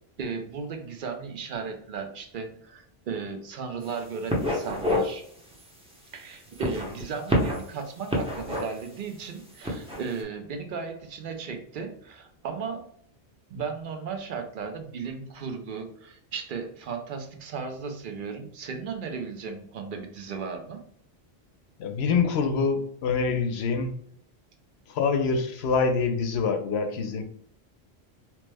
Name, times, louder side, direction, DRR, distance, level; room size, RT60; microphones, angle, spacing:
voice 1, 0.2-5.3 6.1-12.9 13.5-20.8, right 5 dB, 60° right, 5 dB, 0.7 m, -35 dB
sound 1, 3.8-4.0 4.3-5.1 5.5-5.7 6.5-7.7 8.1-8.9 9.5-10.0, equal, 5° right, 0.6 m, -27 dB
voice 2, 21.8-23.9 24.9-27.2, left 5 dB, 80° left, 6 dB, 0.8 m, -25 dB
3.0 x 2.1 x 3.3 m, 0.66 s
omnidirectional pair, 1.0 m